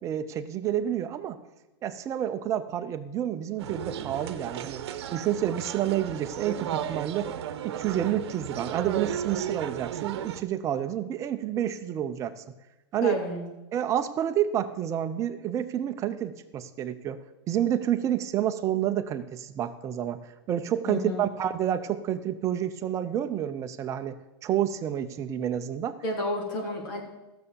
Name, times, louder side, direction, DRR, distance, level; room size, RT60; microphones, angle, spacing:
voice 1, 0.0-1.4 1.8-4.8 5.1-7.3 7.6-12.4 12.9-13.2 13.7-20.2 20.5-24.2 24.4-26.0, right 10 dB, 20° right, 8 dB, 0.7 m, -29 dB
sound 1, 3.6-10.4, right 10 dB, 65° right, 1.0 m, -35 dB
voice 2, 13.0-13.4 20.9-21.3 26.0-27.0, left 1 dB, 50° left, 0 dB, 3.6 m, -31 dB
15.0 x 6.8 x 6.9 m, 1.0 s
supercardioid pair, 155°, 14 cm